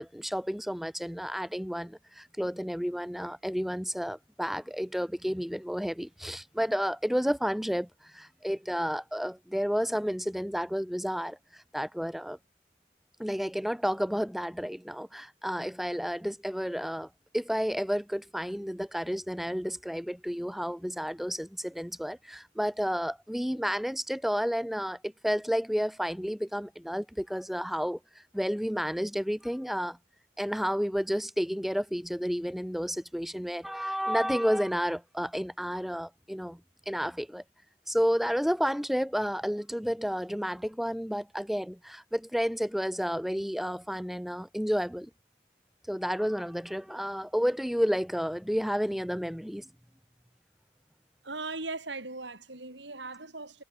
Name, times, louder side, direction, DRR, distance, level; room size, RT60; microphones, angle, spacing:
voice 1, 0.0-12.4 13.2-28.0 28.3-30.0 30.4-36.6 36.9-37.4 37.9-45.1 45.9-49.7, equal, ahead, 0.9 m, -31 dB
voice 2, 51.2-53.6, right 3 dB, 80° right, 5.6 m, -39 dB
head